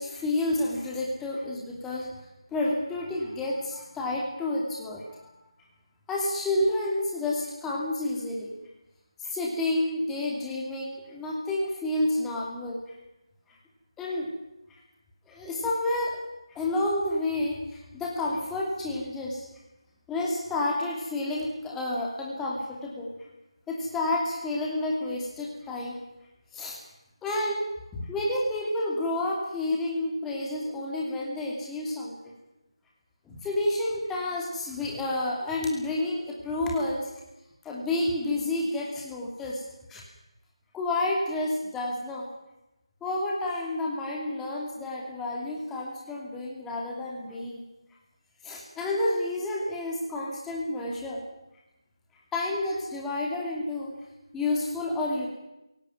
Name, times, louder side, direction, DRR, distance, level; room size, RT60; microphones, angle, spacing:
voice 1, 0.0-2.1 2.5-5.2 6.1-8.5 9.2-12.8 14.0-14.3 15.3-16.2 16.5-19.5 20.1-23.1 23.7-26.0 26.5-26.8 27.2-27.7 28.0-32.1 33.3-37.1 37.6-39.6 39.9-40.0 40.7-42.3 43.0-47.6 48.4-51.2 52.3-53.9 54.3-55.3, left 2 dB, 5° left, -2 dB, 2.8 m, -30 dB
21.0 x 18.0 x 9.3 m, 0.94 s
figure-of-eight pair, 160°, 3 cm